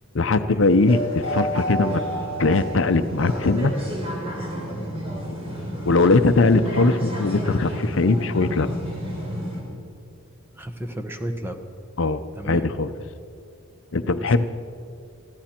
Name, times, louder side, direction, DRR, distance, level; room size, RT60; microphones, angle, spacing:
voice 1, 0.1-2.0 2.4-3.7 5.8-8.8 12.0-12.9 13.9-14.4, left 3 dB, 60° left, 10 dB, 0.6 m, -20 dB
sound 1, 0.6-9.6, equal, 25° right, 3.5 m, -30 dB
voice 2, 10.6-11.6 12.3-12.7 14.0-14.4, right 1 dB, 10° right, 6 dB, 0.9 m, -33 dB
21.0 x 14.5 x 4.4 m, 2.4 s
head